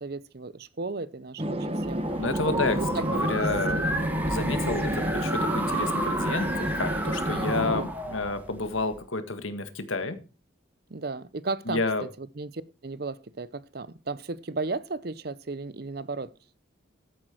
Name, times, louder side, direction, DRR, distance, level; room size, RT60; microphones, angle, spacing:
voice 1, 0.0-2.0 2.5-3.2 3.8-4.0 4.9-5.2 7.3-7.9 10.9-11.8 12.2-16.3, right 3 dB, 50° right, 0.7 m, -35 dB
sound 1, 1.4-7.9, right 1 dB, 30° right, 1.3 m, -29 dB
sound 2, 1.8-9.0, right 1 dB, 10° right, 1.7 m, -32 dB
voice 2, 2.2-3.9 4.2-10.2 11.7-12.1, left 3 dB, 80° left, 1.7 m, -30 dB
14.0 x 9.0 x 4.5 m
head